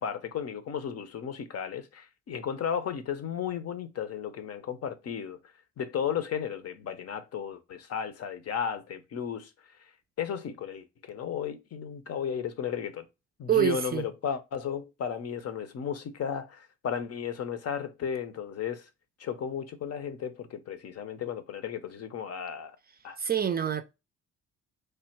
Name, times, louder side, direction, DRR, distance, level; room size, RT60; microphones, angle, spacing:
voice 1, 0.0-5.4 5.8-9.8 10.2-13.1 13.4-18.9 19.2-22.8 23.0-23.2, left 8 dB, 55° left, 0.7 m, -34 dB
voice 2, 13.5-14.0 23.2-23.8, right 9 dB, 30° right, 0.4 m, -26 dB
3.3 x 2.2 x 4.3 m
cardioid pair, 90°, 30 cm